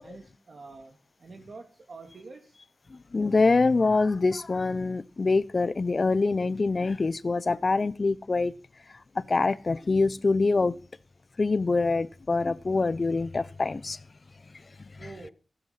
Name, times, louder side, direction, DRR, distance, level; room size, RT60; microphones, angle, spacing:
voice 1, 0.0-2.6 15.0-15.3, right 3 dB, 65° right, 2.1 m, -46 dB
voice 2, 2.9-8.5 8.9-10.8 11.4-14.0 14.9-15.3, left 3 dB, 40° left, 0.7 m, -25 dB
15.5 x 10.5 x 5.7 m
wide cardioid pair, 110°, 0 cm